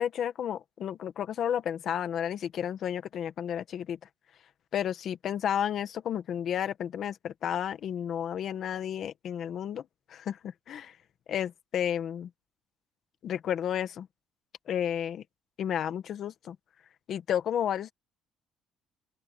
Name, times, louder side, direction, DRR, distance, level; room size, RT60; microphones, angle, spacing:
voice 1, 0.0-4.0 4.7-9.8 10.1-10.4 10.7-10.9 11.3-12.3 13.2-14.1 14.7-15.2 15.6-16.5 17.1-17.9, left 9 dB, 45° left, 1.6 m, -32 dB
open air
cardioid pair, 155°, 0 cm